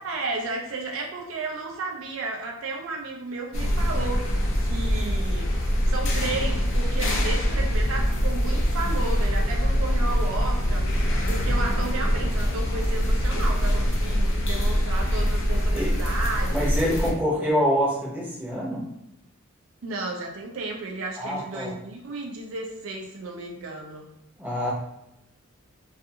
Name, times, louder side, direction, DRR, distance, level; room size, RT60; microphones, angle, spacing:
voice 1, 0.0-4.3 4.6-5.5 5.9-17.1 19.8-24.1, right 3 dB, 65° right, 0 dB, 0.4 m, -33 dB
sound 1, 3.5-17.1, equal, 55° left, 0.5 m, -24 dB
voice 2, 16.5-18.8 21.2-21.7 24.4-24.7, equal, 10° right, -7 dB, 0.7 m, -26 dB
2.5 x 2.4 x 2.7 m, 0.85 s
head